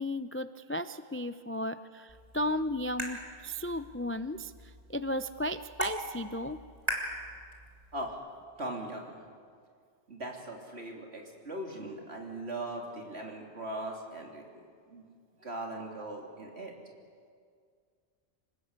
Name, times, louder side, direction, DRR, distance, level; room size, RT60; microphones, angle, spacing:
voice 1, 0.0-6.6, left 1 dB, 20° left, 12 dB, 0.3 m, -34 dB
sound 1, 2.1-8.1, right 1 dB, 35° right, 3.5 m, -41 dB
voice 2, 8.6-9.2 10.1-14.4 14.9-15.0 15.4-16.7, right 1 dB, 70° right, 1 dB, 3.5 m, -39 dB
26.5 x 19.0 x 8.2 m, 2.1 s
omnidirectional pair, 1.1 m